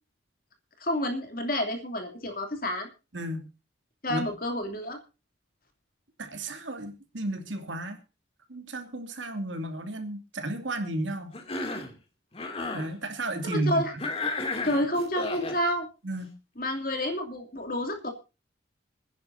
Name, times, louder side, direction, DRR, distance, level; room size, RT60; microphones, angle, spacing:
voice 1, 0.8-2.9 4.0-5.0 13.4-13.9 14.6-15.9 16.6-18.1, left 1 dB, 45° left, 5 dB, 2.8 m, -29 dB
voice 2, 3.1-3.5 4.1-4.3 6.2-8.0 8.5-11.3 12.7-13.8 16.0-16.3, right 1 dB, 80° right, 6 dB, 2.7 m, -33 dB
Cough, 11.3-11.9 12.3-12.9 14.0-15.6, left 3 dB, 30° left, 2.5 m, -33 dB
26.5 x 10.5 x 2.7 m, 0.30 s
head